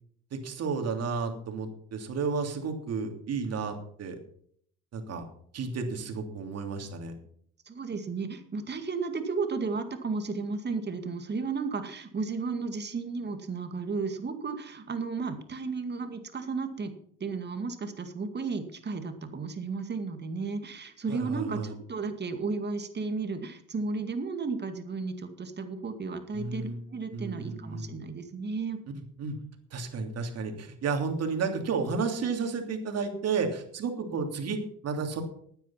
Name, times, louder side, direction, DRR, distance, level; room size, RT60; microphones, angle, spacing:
voice 1, 0.3-4.1 4.9-5.2 5.5-7.1 21.1-21.7 26.3-26.8 27.1-27.9 28.9-29.4 29.7-34.6 34.8-35.2, right 5 dB, 55° right, 5 dB, 3.0 m, -32 dB
voice 2, 7.7-16.9 17.2-28.8, right 4 dB, 35° right, 7 dB, 2.2 m, -33 dB
13.0 x 9.2 x 5.8 m, 0.62 s
supercardioid pair, 80°, 30 cm